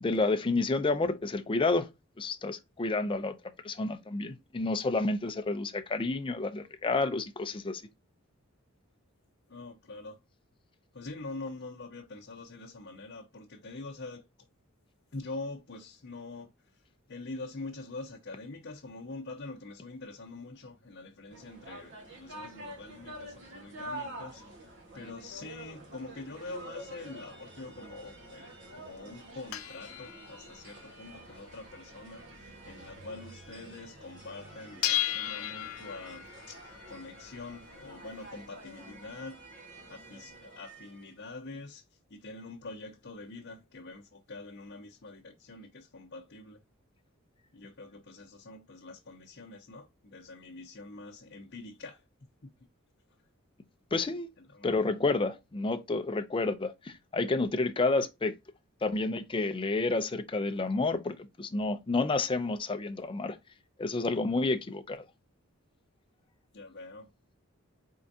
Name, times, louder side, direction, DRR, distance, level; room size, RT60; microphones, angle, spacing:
voice 1, 0.0-1.9 2.2-3.4 3.6-7.8 53.9-54.3 54.6-58.3 58.8-63.4 63.8-65.0, left 3 dB, 25° left, 0.5 m, -30 dB
voice 2, 9.5-10.2 10.9-14.2 15.1-16.8 17.1-24.4 24.9-39.4 39.9-41.8 42.1-46.6 47.5-52.0 54.5-54.8 66.5-67.1, left 3 dB, 55° left, 0.8 m, -45 dB
sound 1, 21.3-41.1, right 1 dB, 55° right, 1.4 m, -48 dB
sound 2, 28.0-33.5 33.9-34.0 34.2-39.1, left 13 dB, 80° left, 0.5 m, -38 dB
4.4 x 3.7 x 2.7 m
head